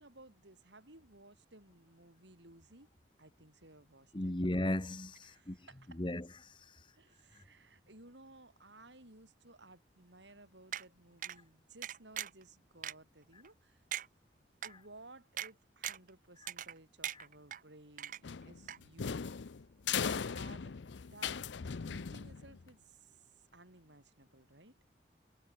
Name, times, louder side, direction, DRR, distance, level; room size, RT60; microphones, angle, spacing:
voice 1, 0.0-2.9 3.2-4.3 5.2-6.0 6.9-13.8 14.6-19.3 20.1-20.8 21.1-21.4 21.8-24.7, right 2 dB, 75° right, 6.3 m, -58 dB
voice 2, 4.1-5.6 5.9-6.9 7.3-7.4 17.1-17.2, left 1 dB, 25° left, 1.1 m, -36 dB
sound 1, 10.7-10.8 11.2-11.4 11.8-12.4 12.8-12.9 13.4-13.5 13.9-14.1 14.6-14.7 15.4-15.5 15.8-16.1 16.5-16.8 17.0-17.6 18.0-18.4 18.7-18.8, right 11 dB, 45° right, 0.6 m, -40 dB
sound 2, 18.2-22.7, left 6 dB, 75° left, 0.6 m, -38 dB
head